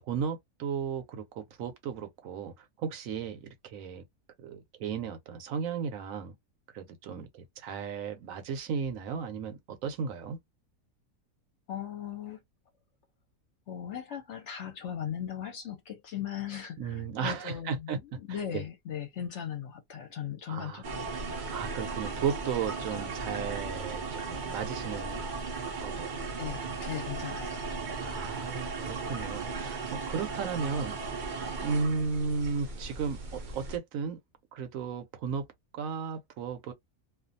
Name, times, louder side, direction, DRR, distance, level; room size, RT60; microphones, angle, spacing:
voice 1, 0.1-4.0 4.4-6.3 6.7-10.4 16.8-18.0 18.3-18.6 20.5-20.8 21.3-25.2 25.8-26.2 28.0-31.3 31.6-34.2 34.5-35.5 35.7-36.7, right 6 dB, 70° right, 1.0 m, -35 dB
voice 2, 11.7-12.4 13.7-21.1 26.4-27.6, left 9 dB, 60° left, 0.9 m, -38 dB
sound 1, 20.8-33.8, right 4 dB, 55° right, 0.5 m, -36 dB
2.5 x 2.2 x 2.6 m
omnidirectional pair, 1.6 m